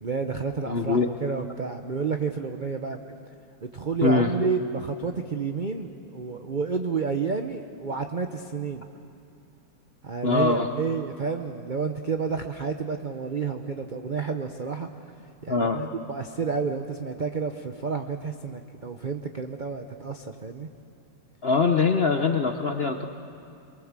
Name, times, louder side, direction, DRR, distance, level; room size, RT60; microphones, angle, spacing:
voice 1, 0.0-3.0 3.6-8.9 10.0-14.9 15.4-20.7, right 5 dB, 55° right, 6 dB, 0.5 m, -30 dB
voice 2, 0.7-1.1 4.0-4.3 10.2-10.7 15.5-15.9 21.4-23.0, left 4 dB, 50° left, 5 dB, 0.7 m, -23 dB
23.5 x 22.5 x 7.4 m, 2.5 s
omnidirectional pair, 2.1 m